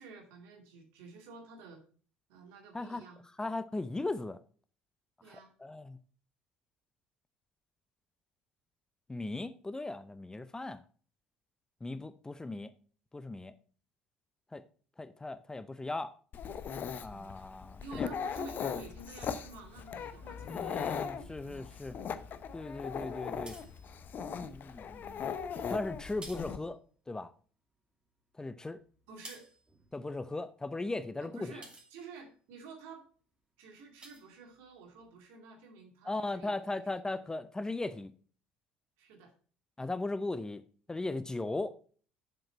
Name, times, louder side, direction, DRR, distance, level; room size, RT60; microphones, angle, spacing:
voice 1, 0.0-1.8 2.3-3.2 5.2-5.5 17.1-17.2 17.8-21.9 29.1-29.5 31.2-33.0 33.6-36.9 39.0-39.3, right 4 dB, 60° right, 2.3 m, -51 dB
voice 2, 3.4-4.4 5.3-6.0 9.1-10.8 11.8-12.7 13.1-13.5 14.5-14.6 15.0-16.1 17.0-18.1 20.4-22.0 22.5-23.5 24.3-25.3 25.7-26.8 27.1-27.3 28.4-28.8 29.9-31.5 36.0-38.1 39.8-40.6 40.9-41.7, left 2 dB, 15° left, 0.6 m, -38 dB
Dog, 16.3-26.6, left 7 dB, 40° left, 0.8 m, -39 dB
sound 1, 23.5-24.4 25.1-25.7 25.9-27.5 27.7-32.6 33.1-33.4 33.7-35.1, right 2 dB, 20° right, 2.5 m, -55 dB
7.6 x 7.3 x 4.2 m
figure-of-eight pair, 60°, 5 cm